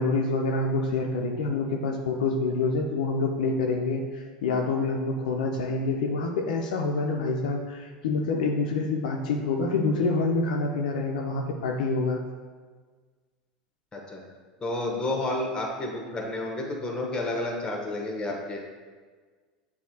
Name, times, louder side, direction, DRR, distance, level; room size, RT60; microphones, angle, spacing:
voice 1, 0.0-12.2, left 3 dB, 75° left, 2 dB, 0.5 m, -27 dB
voice 2, 14.6-18.6, left 2 dB, 20° left, 0 dB, 1.0 m, -30 dB
6.9 x 2.7 x 2.7 m, 1.5 s
hypercardioid pair, 85°, 4 cm